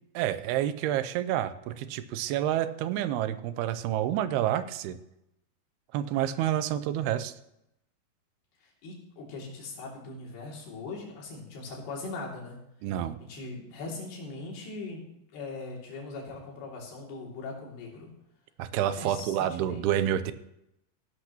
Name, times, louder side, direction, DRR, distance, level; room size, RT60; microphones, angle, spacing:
voice 1, 0.2-5.0 5.9-7.3 12.8-13.2 18.6-20.3, right 11 dB, 90° right, 12 dB, 2.6 m, -28 dB
voice 2, 8.6-12.6 13.2-15.0 15.3-18.1 18.9-19.9, left 3 dB, 90° left, -2 dB, 4.8 m, -40 dB
16.0 x 11.5 x 3.0 m, 0.81 s
omnidirectional pair, 4.5 m